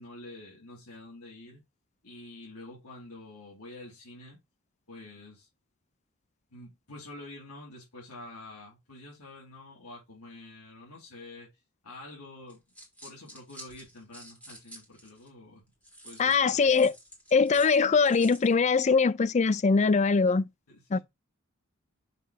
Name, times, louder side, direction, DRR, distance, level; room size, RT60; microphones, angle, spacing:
voice 1, 0.0-1.6 2.0-4.4 4.9-5.5 6.5-12.6 13.0-15.6 16.0-16.9 20.7-21.0, left 2 dB, 85° left, 3.3 m, -47 dB
sound 1, 12.5-15.3 15.8-18.5, right 1 dB, 5° left, 2.9 m, -49 dB
voice 2, 16.2-16.9 17.3-20.4 20.9-21.0, left 5 dB, 30° left, 0.3 m, -22 dB
6.6 x 4.3 x 5.0 m
head